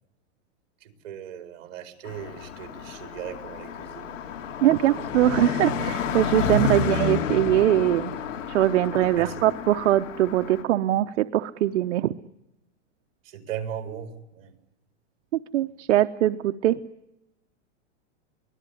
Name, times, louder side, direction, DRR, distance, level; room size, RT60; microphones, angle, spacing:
voice 1, 0.8-4.2 4.8-5.1 6.8-6.9 9.2-9.4 13.2-14.5, right 9 dB, 50° right, 4.0 m, -38 dB
Car passing by, 2.0-10.6, left 6 dB, 90° left, 3.1 m, -30 dB
voice 2, 4.6-8.1 8.5-12.1 15.3-16.8, right 13 dB, 75° right, 0.9 m, -22 dB
24.0 x 18.5 x 9.9 m
supercardioid pair, 165°, 37 cm